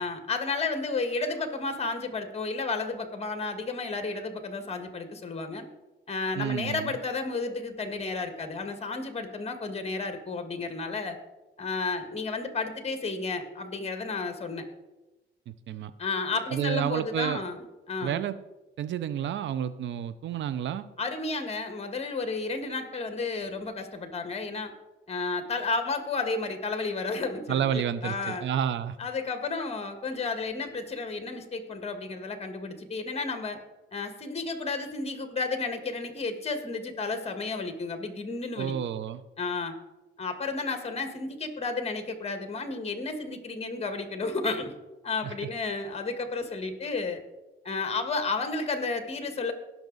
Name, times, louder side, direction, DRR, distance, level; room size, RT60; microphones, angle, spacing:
voice 1, 0.0-5.7 6.1-11.2 11.6-14.6 16.0-18.2 21.0-24.7 25.1-28.4 29.0-33.6 33.9-38.7 39.4-39.8 40.2-44.7 45.0-47.2 47.6-49.5, left 3 dB, 30° left, 7 dB, 1.7 m, -32 dB
voice 2, 6.4-6.9 15.5-15.9 16.5-17.4 18.0-18.4 18.8-20.9 27.5-29.0 38.6-39.2 45.2-45.3, right 9 dB, 70° right, 15 dB, 0.7 m, -30 dB
17.0 x 6.0 x 4.0 m, 1.0 s
cardioid pair, 90°, 20 cm